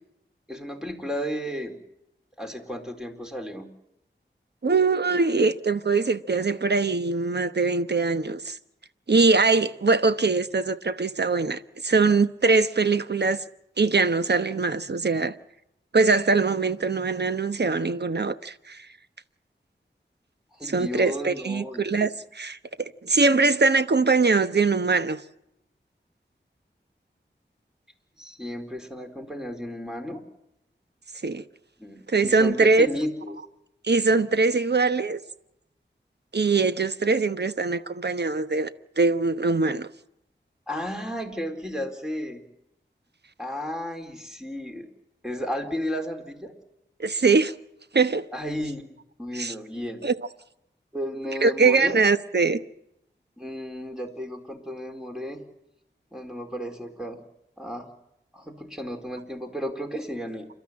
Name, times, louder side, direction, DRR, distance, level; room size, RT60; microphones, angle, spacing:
voice 1, 0.5-1.8 2.4-3.7 20.6-22.1 28.2-30.2 31.8-33.4 40.7-42.4 43.4-44.9 45.2-46.5 48.3-48.9 49.2-50.1 50.9-52.0 53.4-55.5 56.1-57.2 57.6-57.9 58.3-60.5, equal, 5° right, 4.1 m, -33 dB
voice 2, 4.6-8.6 9.1-13.4 13.8-15.3 15.9-18.9 20.6-25.2 31.2-31.4 32.1-32.9 33.8-35.2 36.3-38.7 39.0-39.9 47.0-47.5 47.9-48.2 49.3-49.5 50.0-50.1 51.4-52.6, right 4 dB, 60° right, 1.1 m, -22 dB
29.0 x 13.0 x 8.7 m
wide cardioid pair, 55°, 20 cm